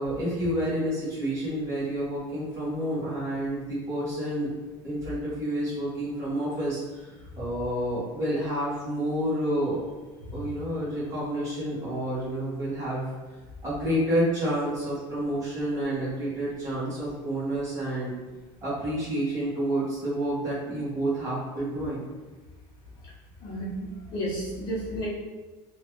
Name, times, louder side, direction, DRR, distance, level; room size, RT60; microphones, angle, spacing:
voice 1, 0.0-4.5 4.8-7.1 7.4-9.9 10.3-13.1 13.6-18.1 18.6-22.0, right 1 dB, 25° right, -8 dB, 1.2 m, -29 dB
voice 2, 23.4-25.1, right 1 dB, 40° left, -6 dB, 0.7 m, -32 dB
3.1 x 2.3 x 2.9 m, 1.2 s
cardioid pair, 170°, 12 cm